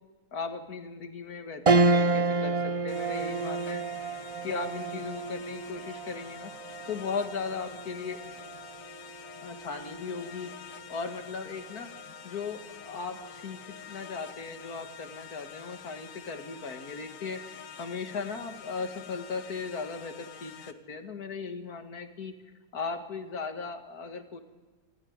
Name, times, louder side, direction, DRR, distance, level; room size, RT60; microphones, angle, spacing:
voice 1, 0.3-4.2 4.4-6.5 6.9-8.2 9.4-11.9 12.2-22.3 22.7-24.4, left 4 dB, 55° left, 6 dB, 2.2 m, -37 dB
sound 1, 1.7-11.3 11.7-11.8 13.2-13.6, right 3 dB, 50° right, 0.4 m, -30 dB
sound 2, 2.9-20.7, left 7 dB, 75° left, 1.8 m, -47 dB
27.5 x 14.0 x 9.6 m, 1.2 s
omnidirectional pair, 1.9 m